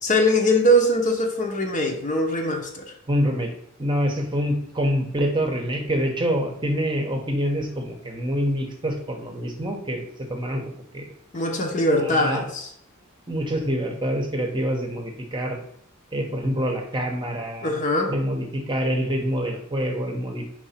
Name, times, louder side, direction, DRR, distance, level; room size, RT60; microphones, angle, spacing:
voice 1, 0.0-2.9 11.3-12.7 17.6-18.1, equal, 35° left, 2 dB, 1.0 m, -22 dB
voice 2, 3.1-3.5 3.8-10.6 10.9-11.1 12.0-12.5 13.3-15.6 16.1-17.7 18.1-20.4, equal, 20° right, 2 dB, 1.0 m, -26 dB
4.9 x 4.1 x 5.7 m, 0.68 s
head